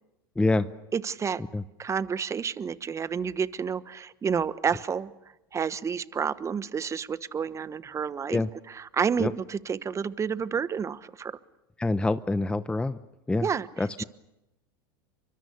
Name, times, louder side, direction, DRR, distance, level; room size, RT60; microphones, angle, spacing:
voice 1, 0.4-0.7 1.5-1.6 8.3-8.5 9.2-9.3 11.8-13.0 13.3-13.5 13.8-14.0, left 2 dB, 10° left, 13 dB, 0.8 m, -26 dB
voice 2, 0.9-1.4 1.8-5.1 5.5-8.4 8.7-11.3 13.4-13.7 14.0-14.1, right 6 dB, 25° right, 15 dB, 1.2 m, -29 dB
29.0 x 24.5 x 6.9 m, 0.94 s
hypercardioid pair, 95°, 12 cm